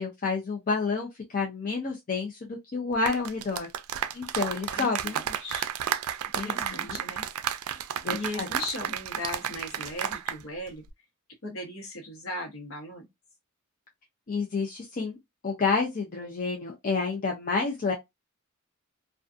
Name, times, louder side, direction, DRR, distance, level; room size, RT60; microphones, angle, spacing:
voice 1, 0.0-3.7 4.1-5.2 6.3-7.0 8.0-8.5 14.3-15.2 15.4-17.9, left 4 dB, 40° left, 0.5 m, -29 dB
sound 1, 2.9-10.4 10.7-10.9, right 9 dB, 90° right, 0.4 m, -32 dB
voice 2, 4.7-5.7 6.3-7.2 8.1-10.8 11.4-13.1, left 1 dB, 65° left, 0.9 m, -37 dB
2.5 x 2.3 x 2.4 m
head